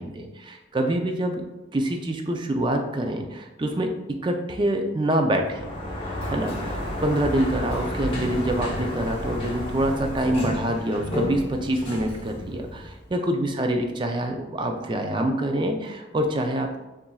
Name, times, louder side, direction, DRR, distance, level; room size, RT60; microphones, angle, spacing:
voice 1, 0.0-1.4 1.7-5.7 6.3-16.8, right 1 dB, 25° right, 4 dB, 0.4 m, -26 dB
Sliding door, 5.4-13.1, left 1 dB, 30° left, 0.9 m, -31 dB
6.9 x 2.5 x 2.3 m, 1.0 s
head